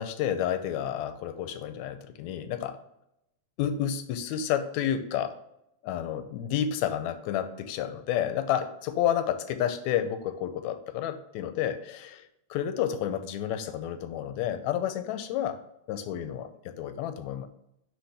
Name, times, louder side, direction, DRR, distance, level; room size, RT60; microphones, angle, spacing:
voice 1, 0.0-2.8 3.6-5.3 5.8-15.6 15.9-17.5, left 10 dB, 85° left, 9 dB, 1.9 m, -30 dB
9.7 x 3.3 x 3.4 m, 0.81 s
omnidirectional pair, 3.3 m